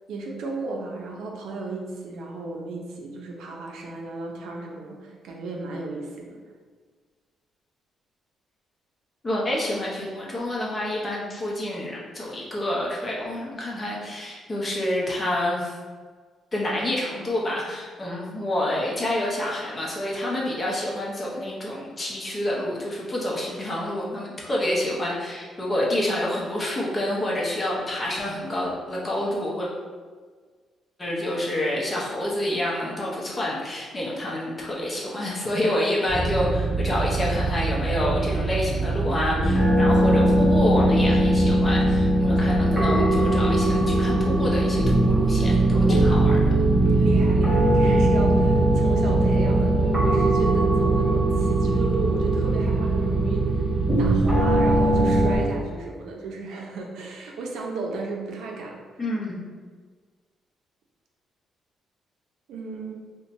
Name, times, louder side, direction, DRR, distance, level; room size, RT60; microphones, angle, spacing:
voice 1, 0.1-6.4 35.7-35.8 46.8-53.6 54.0-58.8 62.5-63.0, right 3 dB, 85° right, 0 dB, 0.5 m, -34 dB
voice 2, 9.2-15.7 16.5-29.7 31.0-46.4 59.0-59.4, left 1 dB, 25° left, -4 dB, 0.8 m, -28 dB
sound 1, 36.1-55.4, right 1 dB, 5° right, 1.0 m, -20 dB
2.6 x 2.2 x 4.0 m, 1.5 s
cardioid pair, 125°, 0 cm